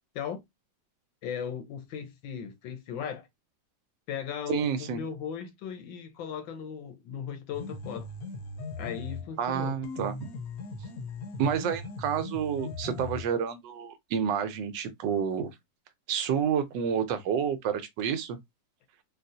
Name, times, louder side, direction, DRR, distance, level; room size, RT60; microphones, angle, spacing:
voice 1, 1.2-3.3 4.1-8.1 8.8-9.7, left 8 dB, 85° left, 1.5 m, -37 dB
voice 2, 4.5-5.0 9.4-10.3 11.4-15.5 16.1-18.4, right 7 dB, 75° right, 1.2 m, -29 dB
sound 1, 7.5-9.3 9.8-13.3, left 3 dB, 65° left, 1.0 m, -39 dB
3.8 x 2.3 x 2.6 m
omnidirectional pair, 2.0 m